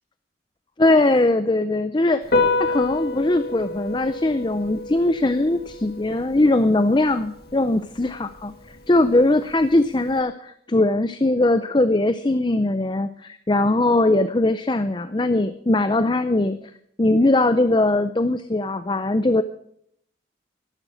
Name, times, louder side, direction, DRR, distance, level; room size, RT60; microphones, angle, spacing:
voice 1, 0.8-2.3 2.7-8.5 8.9-16.6 17.0-19.4, left 2 dB, 25° left, 11 dB, 0.5 m, -20 dB
Piano, 2.2-10.2, left 3 dB, 55° left, 2.4 m, -29 dB
13.5 x 12.0 x 6.1 m, 0.70 s
head